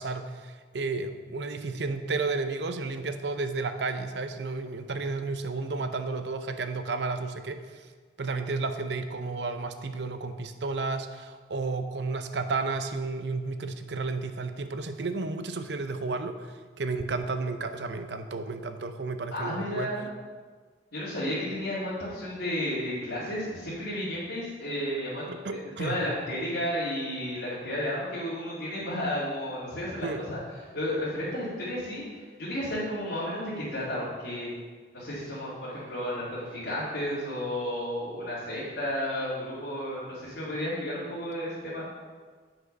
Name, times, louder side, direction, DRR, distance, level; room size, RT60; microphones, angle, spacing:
voice 1, 0.0-7.9 8.2-19.9 25.3-26.0 30.0-30.3, right 3 dB, 75° right, 8 dB, 0.6 m, -32 dB
voice 2, 19.3-20.1 20.9-25.4 25.6-30.4 30.7-34.5 34.9-41.8, left 1 dB, 85° left, -10 dB, 2.5 m, -32 dB
7.8 x 6.3 x 5.3 m, 1.5 s
head